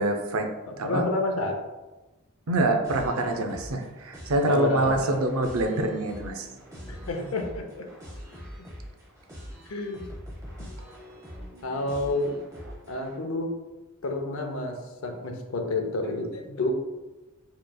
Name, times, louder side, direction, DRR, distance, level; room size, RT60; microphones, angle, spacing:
voice 1, 0.0-0.5 0.8-1.1 2.5-6.5, right 2 dB, 80° right, 5 dB, 0.5 m, -25 dB
voice 2, 0.7-1.6 4.5-5.2 6.9-7.9 9.7-10.1 10.6-10.7 11.6-12.4 12.9-13.5 14.0-16.7, left 2 dB, 75° left, 4 dB, 0.6 m, -29 dB
sound 1, 2.8-13.2, equal, 15° right, 1.0 m, -43 dB
4.7 x 3.1 x 2.2 m, 1.1 s
head